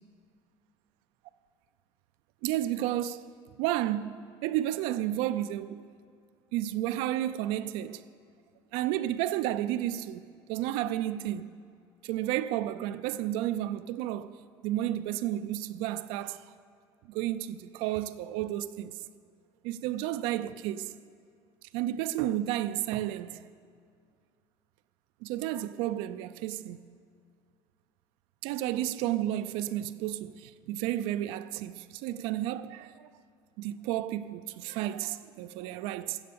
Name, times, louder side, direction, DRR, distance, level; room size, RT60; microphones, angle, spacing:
voice 1, 2.4-3.3 3.6-5.8 6.5-8.0 8.7-10.2 10.5-11.5 12.0-14.4 14.6-16.5 17.1-19.0 19.6-20.9 21.7-23.5 25.2-26.8 28.4-33.1 33.6-36.2, right 13 dB, 75° right, 0.4 m, -32 dB
16.5 x 7.7 x 6.8 m
cardioid pair, 175°, 9 cm